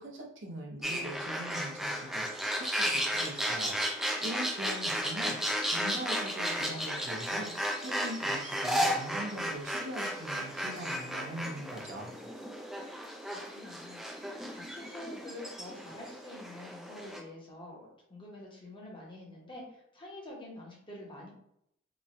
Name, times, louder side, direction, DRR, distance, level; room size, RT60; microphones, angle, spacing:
voice 1, 0.0-2.4 2.8-12.2, right 1 dB, 65° right, -1 dB, 0.7 m, -42 dB
sound 1, 0.8-17.2, equal, ahead, 0.3 m, -34 dB
voice 2, 13.2-21.3, left 1 dB, 25° left, -3 dB, 0.8 m, -47 dB
3.0 x 2.2 x 2.6 m, 0.74 s
head